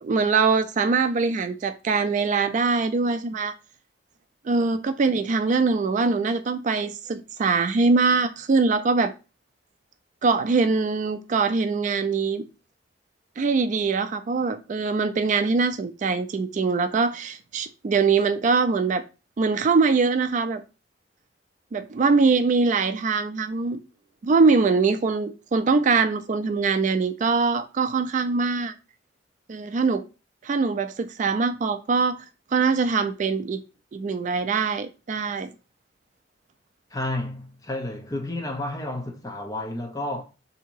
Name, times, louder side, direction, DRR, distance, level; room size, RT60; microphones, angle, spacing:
voice 1, 0.0-3.5 4.5-9.1 10.2-12.4 13.4-19.0 19.4-20.6 21.7-23.8 24.2-28.7 29.5-30.0 30.4-32.2 32.5-33.6 33.9-35.5, right 4 dB, 45° right, 0.3 m, -23 dB
voice 2, 36.9-40.2, left 1 dB, 20° left, 0.7 m, -31 dB
3.6 x 2.8 x 4.5 m
head